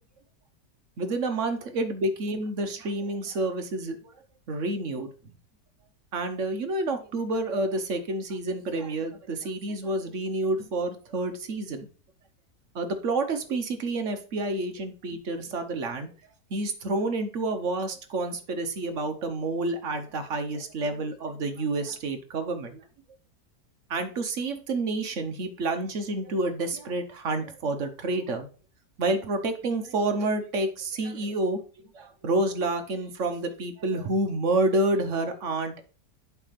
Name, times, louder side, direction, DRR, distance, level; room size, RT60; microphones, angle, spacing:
voice 1, 1.0-4.0 4.5-5.1 6.1-11.9 12.7-16.1 16.5-22.8 23.9-28.5 29.0-31.6 31.9-35.8, right 2 dB, 50° right, 7 dB, 1.1 m, -29 dB
8.2 x 3.4 x 5.8 m, 0.38 s
omnidirectional pair, 1.9 m